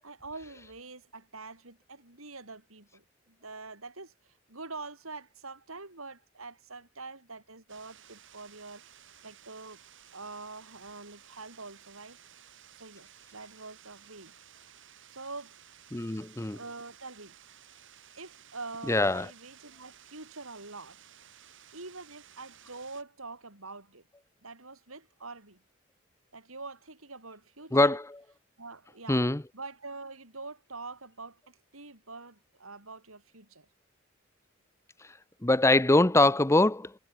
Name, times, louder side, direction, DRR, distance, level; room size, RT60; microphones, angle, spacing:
voice 1, 0.0-9.8 10.1-14.3 15.1-15.6 16.5-17.4 18.2-21.0 21.7-24.0 24.4-25.6 26.3-28.0 28.6-29.2 29.5-33.7, right 3 dB, 90° right, 7.6 m, -45 dB
sound 1, 7.7-23.0, right 10 dB, 65° right, 3.5 m, -56 dB
voice 2, 15.9-16.6 18.9-19.3 27.7-28.0 29.1-29.4 35.4-36.9, left 2 dB, 15° left, 0.8 m, -23 dB
head